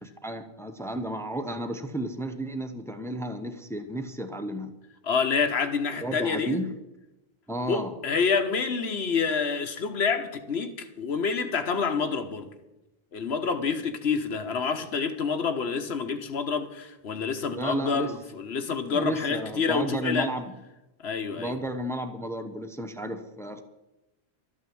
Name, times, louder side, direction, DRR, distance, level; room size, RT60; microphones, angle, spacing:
voice 1, 0.0-4.7 6.0-6.7 7.5-7.9 17.5-18.1 18.9-20.5 21.4-23.6, right 1 dB, 5° left, 0.9 m, -33 dB
voice 2, 5.0-6.6 7.6-12.5 13.1-20.3 21.0-21.6, left 5 dB, 85° left, 1.3 m, -28 dB
13.0 x 8.8 x 7.7 m
omnidirectional pair, 1.1 m